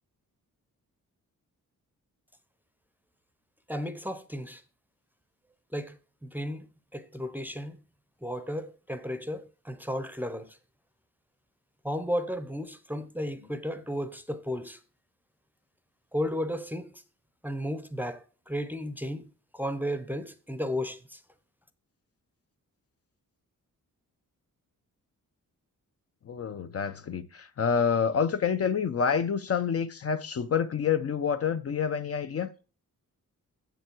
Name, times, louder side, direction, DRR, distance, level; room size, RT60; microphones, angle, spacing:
voice 1, 3.7-4.6 5.7-6.7 6.9-7.8 8.2-10.6 11.8-14.8 16.1-17.0 17.4-19.3 19.5-21.2, equal, 5° right, 0.6 m, -34 dB
voice 2, 26.3-32.5, left 7 dB, 45° left, 0.5 m, -28 dB
7.6 x 7.0 x 4.4 m
wide cardioid pair, 155°, 33 cm